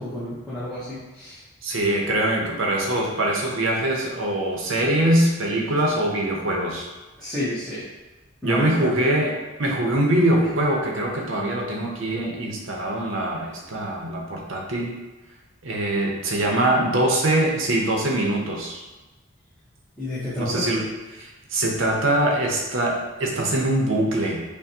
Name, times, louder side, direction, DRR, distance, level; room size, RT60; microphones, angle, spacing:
voice 1, 0.0-1.4 7.2-7.8 8.4-8.9 20.0-20.7, left 1 dB, ahead, -12 dB, 0.8 m, -30 dB
voice 2, 1.6-6.9 8.4-14.9 15.6-18.8 20.4-24.4, right 1 dB, 75° right, -1 dB, 0.7 m, -23 dB
5.7 x 2.2 x 2.7 m, 1.2 s
head